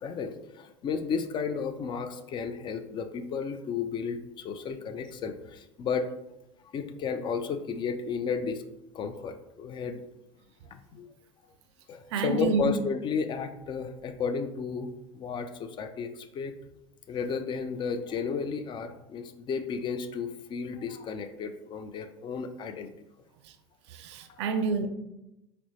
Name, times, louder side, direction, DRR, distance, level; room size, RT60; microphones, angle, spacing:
voice 1, 0.0-6.1 6.7-8.6 8.9-10.0 10.7-11.1 11.9-16.5 17.1-22.9, left 5 dB, 30° left, 9 dB, 0.3 m, -33 dB
voice 2, 12.1-12.8 23.4-23.5 23.9-24.9, right 4 dB, 70° right, 8 dB, 0.4 m, -28 dB
4.2 x 2.0 x 2.8 m, 0.91 s
hypercardioid pair, 80°, 15 cm